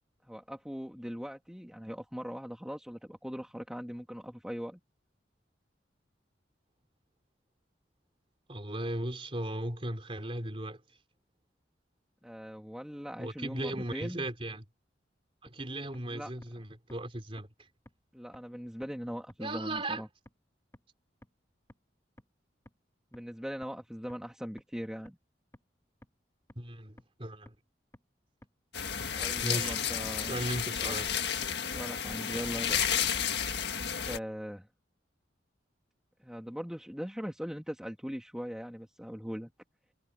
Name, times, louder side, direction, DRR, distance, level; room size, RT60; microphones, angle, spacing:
voice 1, 0.2-4.8 12.2-14.3 16.1-16.3 18.1-20.1 23.1-25.2 29.2-30.4 30.8-31.0 31.7-32.9 34.0-34.7 36.2-39.5, equal, 5° right, 2.0 m, -40 dB
voice 2, 8.5-10.8 13.2-14.6 15.4-17.5 19.4-20.0 26.6-27.6 29.4-29.8 30.2-31.0, right 1 dB, 30° right, 3.5 m, -37 dB
sound 1, 15.5-15.6 15.9-16.0 16.4-16.5 16.9-17.0 17.4-17.5 17.9-18.0 18.3-18.4 18.8-18.9 19.3-19.4 19.8-19.9 20.3-20.4 20.7-20.8 21.2-21.3 21.7-21.8 22.2-22.3 22.7-22.8 23.1-23.2 23.6-23.7 24.1-24.2 24.6-24.7 25.1-25.2 25.5-25.6 26.0-26.1 26.5-26.6 27.0-27.1 27.5-27.6 27.9-28.0 28.4-28.5 28.9-29.0 29.4-29.5 29.9-30.0 30.3-30.4, equal, 15° left, 1.9 m, -53 dB
sound 2, 28.7-34.2, left 8 dB, 60° left, 1.8 m, -32 dB
head